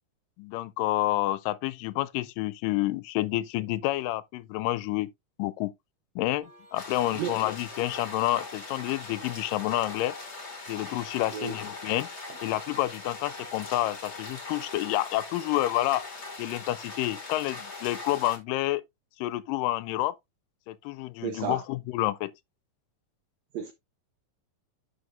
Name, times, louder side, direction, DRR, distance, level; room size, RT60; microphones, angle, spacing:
voice 1, 0.4-5.1 5.4-5.7 6.2-10.2 10.7-12.1 12.4-16.1 16.4-18.8 19.2-20.2 20.7-22.3, left 16 dB, 85° left, 2.1 m, -29 dB
sound 1, 6.4-14.7, right 1 dB, 35° right, 4.5 m, -55 dB
sound 2, 6.7-18.4, left 3 dB, 35° left, 1.2 m, -41 dB
voice 2, 21.2-21.6 23.5-23.7, right 8 dB, 90° right, 1.5 m, -32 dB
11.0 x 5.0 x 2.6 m
omnidirectional pair, 3.9 m